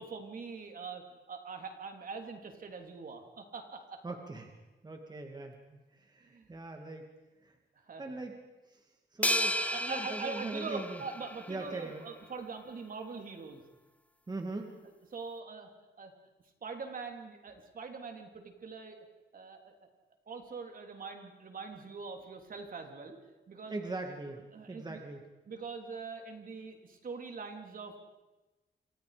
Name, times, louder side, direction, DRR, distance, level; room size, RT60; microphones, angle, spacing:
voice 1, 0.0-4.0 6.2-6.5 7.7-8.1 9.4-13.6 15.1-15.7 16.0-16.1 16.6-19.0 19.3-19.9 20.3-23.2 23.5-23.8 24.5-25.0 25.5-28.0, right 4 dB, 50° right, 4 dB, 3.5 m, -43 dB
voice 2, 4.0-4.5 4.8-7.1 7.4-7.5 8.0-8.4 8.7-8.8 9.1-11.0 11.5-12.1 14.3-14.7 23.7-24.4 24.7-25.2, right 2 dB, 20° right, 3 dB, 2.3 m, -41 dB
sound 1, 9.2-11.7, left 1 dB, 5° left, 1.0 m, -33 dB
28.5 x 26.5 x 5.2 m, 1.1 s
wide cardioid pair, 130°, 19 cm